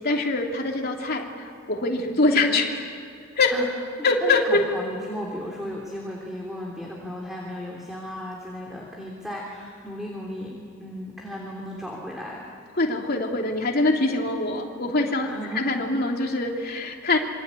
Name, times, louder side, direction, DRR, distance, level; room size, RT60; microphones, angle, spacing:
voice 1, 0.0-3.0 3.4-3.5 4.0-4.6 12.8-17.2, left 2 dB, 50° left, 1 dB, 3.1 m, -24 dB
voice 2, 4.2-12.4 15.2-15.6, equal, ahead, -2 dB, 3.3 m, -35 dB
26.5 x 24.5 x 8.6 m, 2.4 s
head